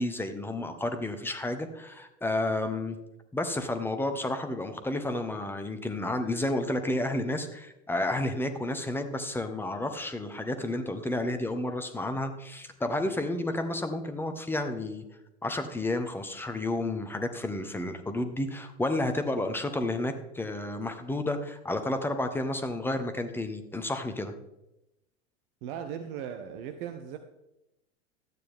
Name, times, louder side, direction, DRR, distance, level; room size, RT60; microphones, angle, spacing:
voice 1, 0.0-3.0 3.3-15.0 15.4-24.3, left 1 dB, 5° left, 0.9 m, -31 dB
voice 2, 25.6-27.2, right 8 dB, 45° right, 0.8 m, -37 dB
12.5 x 9.3 x 3.6 m
figure-of-eight pair, 85°, 37 cm